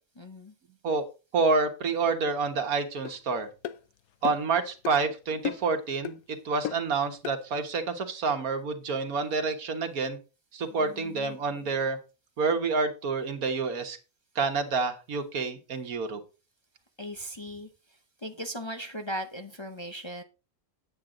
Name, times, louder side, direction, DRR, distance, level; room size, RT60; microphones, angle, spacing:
voice 1, 0.2-0.5 10.8-11.4 17.0-17.7 18.2-20.2, equal, 25° left, 5 dB, 0.6 m, -38 dB
voice 2, 1.3-3.5 4.2-10.2 10.5-12.0 12.4-14.0 14.3-16.2, right 4 dB, 75° right, 8 dB, 1.7 m, -28 dB
sound 1, 3.1-3.2 3.6-3.8 4.3-4.5 4.8-5.0 5.5-5.8 6.1-6.2 6.7-6.9 7.2-7.4, left 10 dB, 85° left, 1.1 m, -34 dB
9.4 x 8.0 x 3.8 m, 0.32 s
omnidirectional pair, 1.5 m